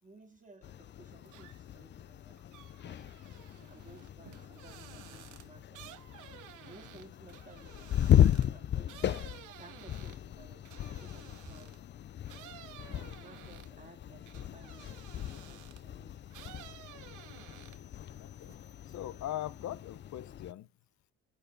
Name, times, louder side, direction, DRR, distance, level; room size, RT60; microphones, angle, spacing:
voice 1, 0.0-3.1 3.7-5.9 6.6-9.0 9.5-10.6 10.9-11.7 12.9-16.4, right 3 dB, 25° right, 3.0 m, -57 dB
sound 1, 0.6-20.5, left 11 dB, 40° left, 0.4 m, -35 dB
sound 2, 1.3-1.8 2.1-11.9 12.3-15.9 16.3-18.0 18.3-19.0, right 14 dB, 85° right, 0.8 m, -54 dB
voice 2, 18.2-18.6 18.9-20.7, left 13 dB, 65° left, 0.8 m, -41 dB
9.2 x 6.8 x 2.7 m
cardioid pair, 90°, 30 cm